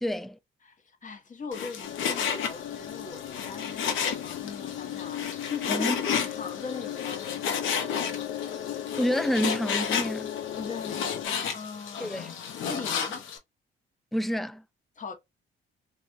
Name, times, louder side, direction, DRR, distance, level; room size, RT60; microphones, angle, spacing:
voice 1, 0.0-0.4 5.7-6.0 9.0-10.3 12.0-12.3 14.1-14.6, equal, ahead, 0.3 m, -28 dB
voice 2, 0.6-8.6 10.6-13.3 15.0-15.1, left 5 dB, 40° left, 1.1 m, -41 dB
Frying (food), 1.5-13.4, left 7 dB, 85° left, 0.8 m, -32 dB
sound 1, 1.8-11.3, left 11 dB, 65° left, 0.4 m, -36 dB
3.3 x 2.5 x 2.6 m
cardioid pair, 90°, 20 cm